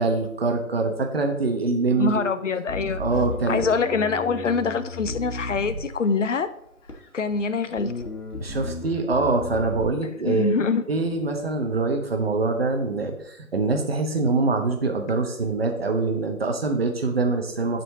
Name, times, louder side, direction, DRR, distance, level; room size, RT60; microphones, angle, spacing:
voice 1, 0.0-2.3 3.0-3.7 8.4-17.8, right 3 dB, 40° right, 1.0 m, -24 dB
voice 2, 2.0-3.0 3.5-6.5 7.1-7.9 10.2-10.8, left 4 dB, 55° left, 0.6 m, -24 dB
Bass guitar, 2.7-6.3 6.9-7.4 7.8-9.9, left 2 dB, 85° left, 1.5 m, -34 dB
11.0 x 4.3 x 2.7 m
figure-of-eight pair, 155°, 44 cm